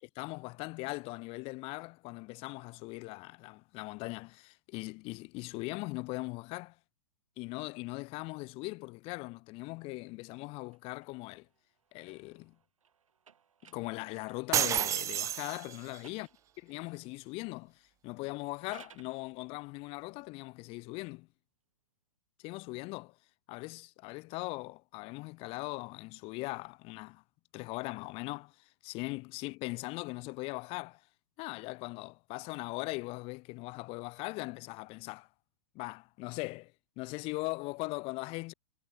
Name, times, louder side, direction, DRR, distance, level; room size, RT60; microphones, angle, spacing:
voice 1, 0.2-6.8 7.4-11.5 11.9-12.6 13.6-16.3 16.6-21.3 22.4-23.1 23.5-27.2 27.5-28.5 28.8-31.0 31.4-35.3 35.7-38.5, left 24 dB, 35° left, 2.2 m, -40 dB
sound 1, 10.7-14.7 15.6-16.9 18.4-19.2, right 7 dB, 85° right, 7.7 m, -60 dB
sound 2, 14.5-16.0, right 11 dB, 20° right, 0.6 m, -30 dB
hypercardioid pair, 135°, 17 cm